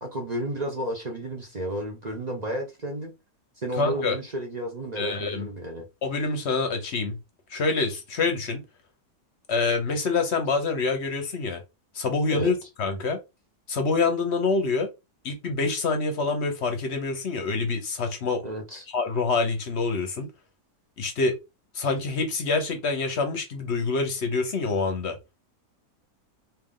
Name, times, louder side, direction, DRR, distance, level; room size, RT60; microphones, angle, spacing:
voice 1, 0.0-3.1 3.6-5.9 12.3-12.5 18.4-18.9, right 1 dB, 40° right, 0.6 m, -32 dB
voice 2, 3.8-4.1 5.0-5.5 6.0-7.2 7.5-8.6 9.5-11.6 11.9-13.2 13.7-14.9 15.2-18.4 18.9-20.3 21.0-21.4 21.7-25.2, left 4 dB, 50° left, 0.9 m, -26 dB
3.4 x 2.7 x 3.6 m
omnidirectional pair, 1.8 m